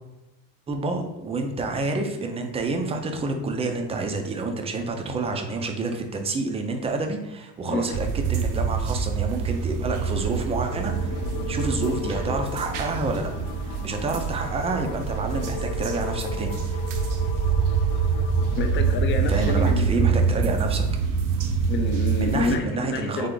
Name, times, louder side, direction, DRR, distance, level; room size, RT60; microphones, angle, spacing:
voice 1, 0.7-13.3 13.6-16.9 19.3-20.9 22.2-23.3, right 3 dB, 15° right, 4 dB, 0.5 m, -28 dB
sound 1, 7.9-22.6, right 6 dB, 60° right, 0.7 m, -25 dB
sound 2, 10.7-19.0, left 8 dB, 80° left, 0.5 m, -37 dB
voice 2, 18.6-20.2 21.7-23.3, left 4 dB, 30° left, 4 dB, 0.6 m, -28 dB
3.6 x 3.5 x 3.8 m, 0.97 s
cardioid pair, 135°, 36 cm